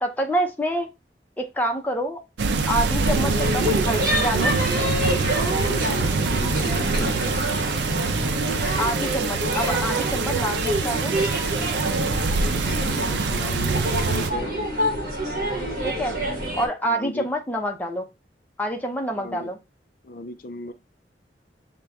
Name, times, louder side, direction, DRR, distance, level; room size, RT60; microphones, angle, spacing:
voice 1, 0.0-0.9 1.4-2.2 2.7-4.5 8.8-11.1 15.8-16.2 16.5-18.0 18.6-19.6, equal, 10° left, 2 dB, 0.6 m, -27 dB
sound 1, 2.4-14.3, right 4 dB, 80° right, 0.5 m, -25 dB
sound 2, 3.0-16.7, equal, 55° right, 1.4 m, -27 dB
voice 2, 5.5-7.4 12.4-14.5 16.8-17.3 19.2-19.5 20.0-20.7, left 1 dB, 55° left, 8 dB, 0.5 m, -36 dB
6.7 x 2.2 x 3.4 m, 0.25 s
head